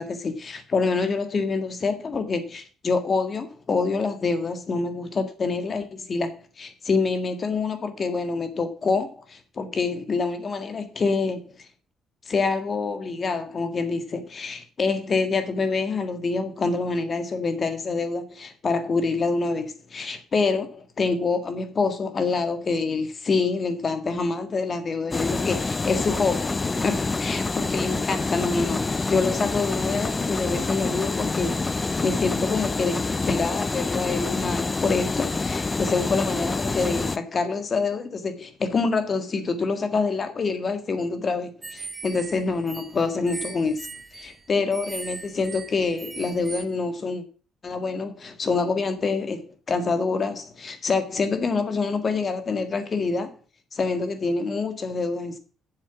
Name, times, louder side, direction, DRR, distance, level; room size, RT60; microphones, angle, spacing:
voice 1, 0.0-11.5 12.3-43.9 44.1-47.2 47.6-53.3 53.7-55.4, left 4 dB, 40° left, 1.7 m, -26 dB
sound 1, 25.1-37.2, left 3 dB, 25° left, 0.4 m, -27 dB
sound 2, 41.6-46.7, right 4 dB, 25° right, 1.2 m, -39 dB
7.7 x 7.4 x 7.0 m
cardioid pair, 110°, 0 cm